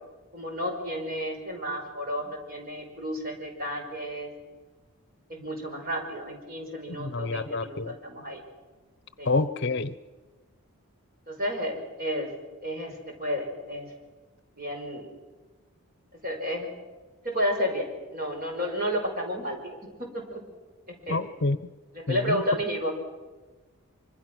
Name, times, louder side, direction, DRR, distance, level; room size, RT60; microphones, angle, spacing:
voice 1, 0.3-4.3 5.3-8.4 9.2-9.3 11.3-12.3 12.6-13.9 14.6-15.0 16.2-16.7 17.2-20.4 20.9-21.2 21.9-22.9, equal, 40° right, 2 dB, 5.2 m, -32 dB
voice 2, 6.9-7.9 9.3-9.9 21.1-21.6 22.1-22.4, left 3 dB, 50° left, 14 dB, 0.8 m, -28 dB
25.0 x 25.0 x 6.2 m, 1.3 s
head